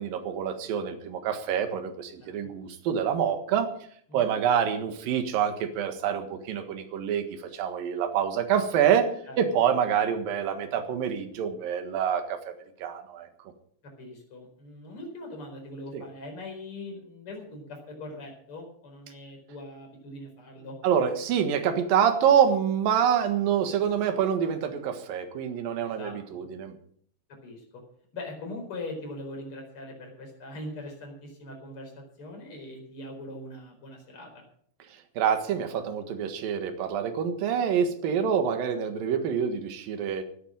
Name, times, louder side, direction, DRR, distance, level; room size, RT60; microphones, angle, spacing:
voice 1, 0.0-3.7 4.1-9.1 9.4-12.5 12.8-13.3 15.9-16.0 20.8-26.7 35.2-40.2, right 8 dB, 60° right, 7 dB, 2.9 m, -26 dB
voice 2, 13.8-20.8 25.8-26.4 27.4-27.8 28.1-34.4, left 2 dB, 30° left, 2 dB, 5.1 m, -41 dB
15.0 x 9.3 x 7.5 m, 0.62 s
omnidirectional pair, 5.2 m